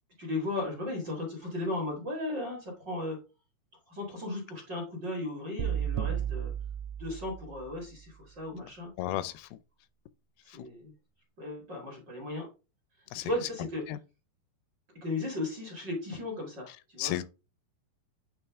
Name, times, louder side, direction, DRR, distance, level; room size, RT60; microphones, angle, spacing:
voice 1, 0.2-3.2 3.9-6.5 7.0-8.9 9.2-9.3 10.4-10.9 11.4-12.5 13.2-13.8 15.0-17.2, left 2 dB, 40° right, 1.6 m, -36 dB
sound 1, 5.6-7.7, right 10 dB, 85° right, 2.4 m, -33 dB
voice 2, 9.0-9.6 13.1-13.3 13.9-14.0 17.0-17.2, left 14 dB, 85° left, 2.4 m, -33 dB
8.7 x 3.2 x 3.5 m
omnidirectional pair, 4.3 m